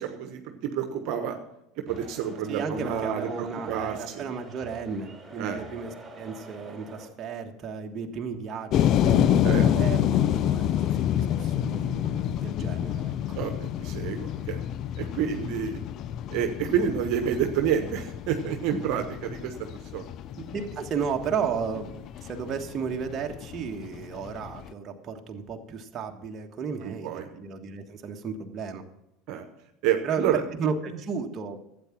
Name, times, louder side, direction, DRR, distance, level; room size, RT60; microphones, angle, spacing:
voice 1, 0.0-1.4 1.9-4.2 5.4-5.6 9.4-9.6 13.3-14.6 15.0-15.8 16.3-19.7 19.9-20.0 26.8-27.3 29.3-29.4 29.8-30.4, right 8 dB, 60° right, 6 dB, 1.3 m, -29 dB
sound 1, 1.9-7.1, right 2 dB, 15° right, 4.2 m, -45 dB
voice 2, 2.5-13.4 20.4-28.8 30.0-31.7, right 6 dB, 40° right, 3 dB, 1.5 m, -34 dB
sound 2, 8.7-24.7, left 11 dB, 50° left, 0.5 m, -28 dB
12.0 x 8.8 x 6.0 m, 0.83 s
hypercardioid pair, 85°, 0 cm